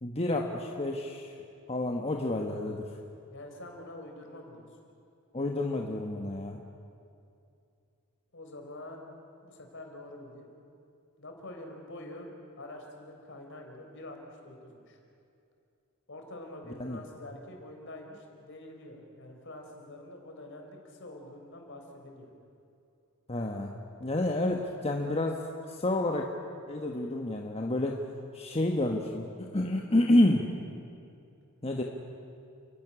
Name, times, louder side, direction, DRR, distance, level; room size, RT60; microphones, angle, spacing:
voice 1, 0.0-1.3 1.7-2.9 5.3-6.6 16.8-17.0 23.3-23.7 24.0-26.3 26.7-28.0 28.3-30.5 31.6-31.8, left 1 dB, 25° left, 1 dB, 1.2 m, -29 dB
voice 2, 3.3-4.8 8.3-9.0 9.4-10.5 11.2-12.3 12.6-15.0 16.1-22.3, left 1 dB, 55° left, 2 dB, 4.1 m, -46 dB
29.5 x 12.0 x 9.9 m, 2.5 s
head